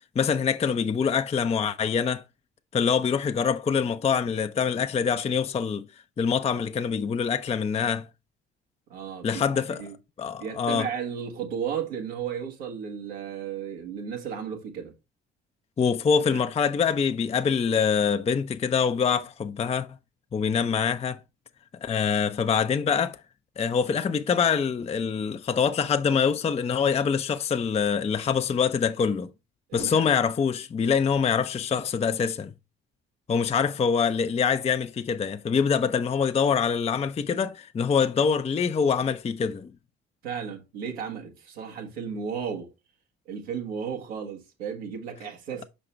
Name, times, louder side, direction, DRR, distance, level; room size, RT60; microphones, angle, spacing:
voice 1, 0.2-2.2 2.7-5.8 6.2-8.1 9.2-9.8 10.2-10.9 15.8-19.9 20.3-21.2 21.8-23.2 23.6-29.3 29.7-32.5 33.3-39.7, left 6 dB, 20° left, 0.5 m, -25 dB
voice 2, 8.9-9.9 10.4-14.9 16.3-16.4 29.7-30.1 40.2-42.7 43.2-45.7, right 7 dB, 85° right, 1.4 m, -34 dB
5.8 x 5.1 x 3.2 m
hypercardioid pair, 50°, 31 cm